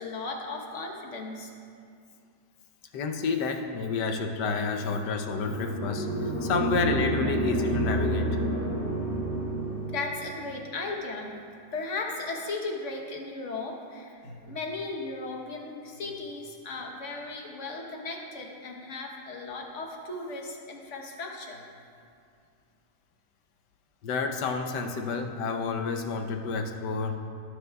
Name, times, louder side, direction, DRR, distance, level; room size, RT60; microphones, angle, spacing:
voice 1, 0.0-1.5 9.9-11.4 11.7-21.6, left 3 dB, 50° left, 1 dB, 1.3 m, -36 dB
voice 2, 2.9-8.4 24.0-27.2, left 4 dB, 85° left, 4 dB, 1.4 m, -29 dB
sound 1, 5.3-10.2, right 1 dB, 10° left, 1.9 m, -29 dB
17.5 x 7.9 x 2.3 m, 2.4 s
omnidirectional pair, 1.8 m